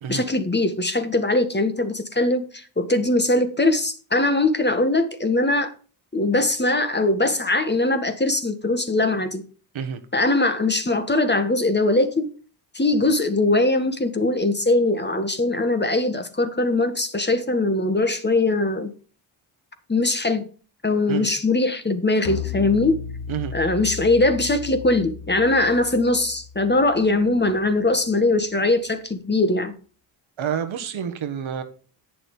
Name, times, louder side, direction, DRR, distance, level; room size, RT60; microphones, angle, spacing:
voice 1, 0.1-5.7 6.1-9.4 10.1-12.3 12.7-18.9 19.9-20.5 20.8-23.0 23.5-29.7, left 2 dB, 20° left, 1.6 m, -21 dB
sound 1, 22.3-27.7, left 8 dB, 85° left, 1.1 m, -35 dB
voice 2, 30.4-31.6, right 8 dB, 70° right, 1.5 m, -28 dB
8.8 x 6.9 x 5.4 m
cardioid pair, 60°, 48 cm